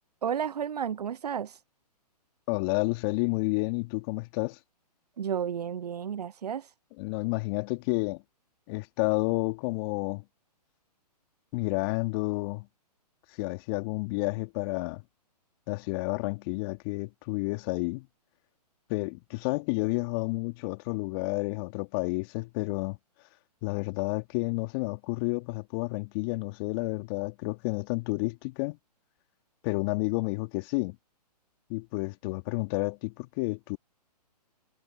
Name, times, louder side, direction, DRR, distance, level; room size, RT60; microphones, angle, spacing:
voice 1, 0.2-1.6 5.2-6.7, right 8 dB, 70° right, 0.6 m, -32 dB
voice 2, 2.5-4.6 7.0-8.2 8.7-10.2 11.5-12.7 13.4-15.0 15.7-18.1 18.9-23.0 23.6-28.8 29.6-31.0 31.7-33.8, left 27 dB, 35° left, 2.7 m, -30 dB
figure-of-eight pair, 130°, 21 cm